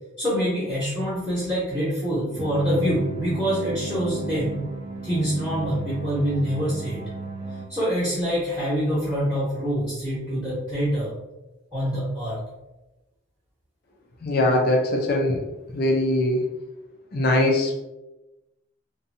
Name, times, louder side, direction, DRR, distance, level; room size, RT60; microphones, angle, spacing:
voice 1, 0.2-4.6 5.0-7.0 7.7-11.1 11.7-12.4, equal, 10° right, -11 dB, 0.9 m, -25 dB
sound 1, 2.4-7.6, right 4 dB, 25° right, 0.4 m, -35 dB
voice 2, 14.2-15.4 15.7-16.5 17.1-17.9, left 1 dB, 45° left, 1 dB, 0.4 m, -21 dB
2.6 x 2.2 x 2.6 m, 1.0 s
head